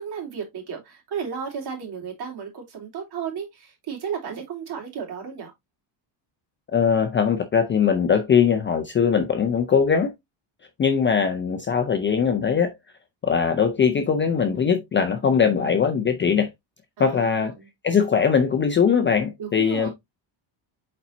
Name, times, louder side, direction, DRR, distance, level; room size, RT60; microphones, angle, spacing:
voice 1, 0.0-5.5 17.0-17.7 19.4-19.9, right 7 dB, 50° right, 3.2 m, -33 dB
voice 2, 6.7-10.1 10.8-12.7 13.2-16.5 17.0-17.5 17.8-19.9, left 6 dB, 25° left, 0.5 m, -21 dB
8.3 x 4.2 x 2.7 m
cardioid pair, 175°, 50 cm